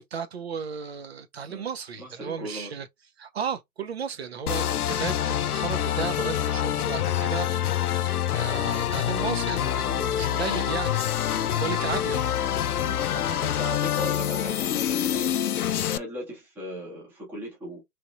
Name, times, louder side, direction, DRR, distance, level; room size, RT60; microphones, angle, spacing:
voice 1, 0.0-2.9 3.2-12.3 12.6-12.7 13.1-13.4, right 6 dB, 45° right, 0.7 m, -34 dB
voice 2, 1.9-2.7 4.6-4.8 11.7-11.9 12.8-13.0 13.4-15.3 15.9-17.8, equal, 5° right, 0.9 m, -38 dB
sound 1, 4.5-16.0, left 10 dB, 70° left, 0.6 m, -26 dB
4.3 x 3.2 x 2.5 m
hypercardioid pair, 145°, 47 cm